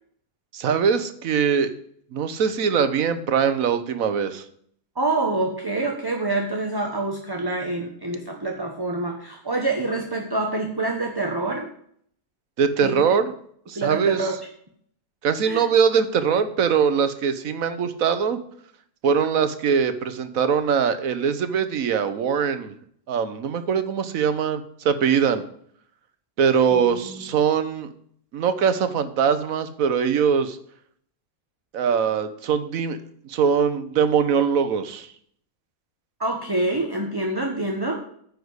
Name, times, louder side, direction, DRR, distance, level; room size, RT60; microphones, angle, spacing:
voice 1, 0.5-1.7 2.1-4.4 12.6-13.3 13.7-14.3 15.2-18.4 19.0-22.7 23.1-25.4 26.4-27.9 28.3-30.6 31.7-33.0 33.3-35.1, right 7 dB, 70° right, 11 dB, 1.3 m, -22 dB
voice 2, 5.0-11.7 12.8-13.0 13.7-14.3 15.4-15.7 26.7-27.3 36.2-38.0, right 2 dB, 15° right, 1 dB, 1.0 m, -26 dB
9.7 x 5.3 x 8.0 m, 0.64 s
omnidirectional pair, 1.5 m